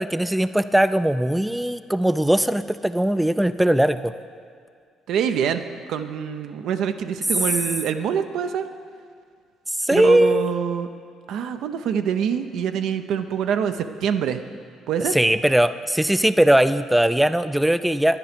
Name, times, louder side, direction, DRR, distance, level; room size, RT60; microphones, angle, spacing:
voice 1, 0.0-4.1 9.8-10.5 15.1-18.2, right 1 dB, 5° right, 12 dB, 0.3 m, -19 dB
voice 2, 5.1-5.6 5.9-8.6 9.9-10.9 11.3-14.4 14.9-15.2, right 8 dB, 70° right, 8 dB, 0.6 m, -25 dB
11.0 x 9.7 x 5.1 m, 2.1 s
supercardioid pair, 80°, 0 cm